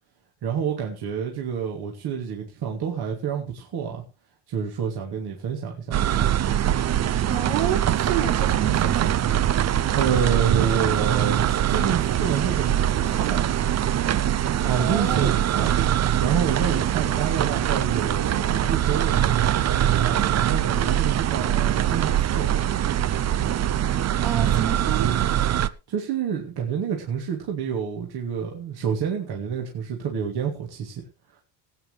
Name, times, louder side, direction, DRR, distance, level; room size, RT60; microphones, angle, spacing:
voice 1, 0.4-4.0 4.5-6.1 9.9-13.4 14.6-15.7 16.2-19.2 20.0-22.5 25.9-31.0, right 7 dB, 50° right, 0 dB, 2.8 m, -28 dB
sound 1, 5.9-25.7, right 11 dB, 35° right, 0.6 m, -22 dB
voice 2, 7.2-9.2 14.8-15.3 24.2-25.2, right 8 dB, 80° right, 1 dB, 5.3 m, -29 dB
19.5 x 9.2 x 3.3 m, 0.28 s
cardioid pair, 135°, 49 cm